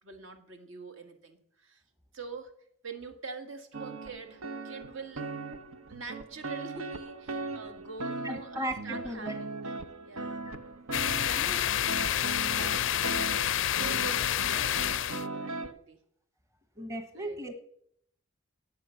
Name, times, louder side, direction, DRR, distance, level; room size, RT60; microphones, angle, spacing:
voice 1, 0.0-1.8 2.1-2.5 2.8-5.2 5.9-9.8 10.0-10.4 11.3-12.8 13.4-16.0 17.2-17.4, right 4 dB, 70° right, 6 dB, 1.9 m, -45 dB
Jazz Chords, 3.7-15.7, right 3 dB, 85° right, 1.0 m, -39 dB
voice 2, 8.2-9.4 10.5-10.6 11.4-11.6 16.8-17.5, right 1 dB, 15° right, 7 dB, 1.0 m, -36 dB
sound 1, 10.9-15.2, left 11 dB, 60° left, 0.4 m, -28 dB
18.0 x 7.6 x 5.8 m, 0.69 s
head